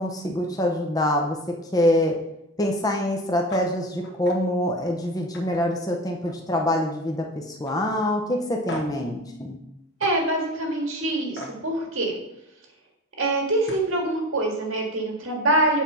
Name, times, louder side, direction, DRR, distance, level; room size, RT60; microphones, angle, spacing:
voice 1, 0.0-1.4 1.7-2.1 2.6-9.6, left 1 dB, 15° left, 1 dB, 0.7 m, -25 dB
sound 1, 3.5-3.7 4.0-4.4 4.8-4.9 5.3-6.5 6.8-7.2 7.6-7.8 8.7-9.0 10.0-10.1 11.4-11.6 13.2-13.3 13.6-13.9, equal, 55° left, 1.3 m, -38 dB
voice 2, 10.0-12.1 13.2-15.8, right 1 dB, 70° right, 1 dB, 1.8 m, -24 dB
7.3 x 4.4 x 5.5 m, 0.85 s
head